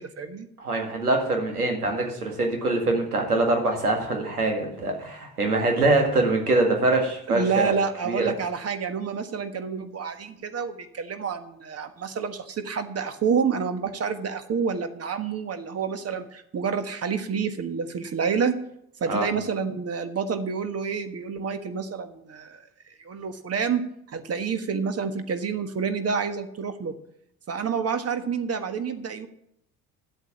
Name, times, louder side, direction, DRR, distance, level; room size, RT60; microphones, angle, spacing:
voice 1, 0.0-0.5 7.3-18.6 19.0-22.6 23.0-23.8 24.1-26.9 27.5-29.3, right 6 dB, 35° right, 9 dB, 1.5 m, -28 dB
voice 2, 0.6-7.7 8.1-8.3 19.1-19.3, right 2 dB, 90° right, 2 dB, 2.1 m, -24 dB
11.5 x 8.1 x 7.2 m, 0.74 s
figure-of-eight pair, 60°, 44 cm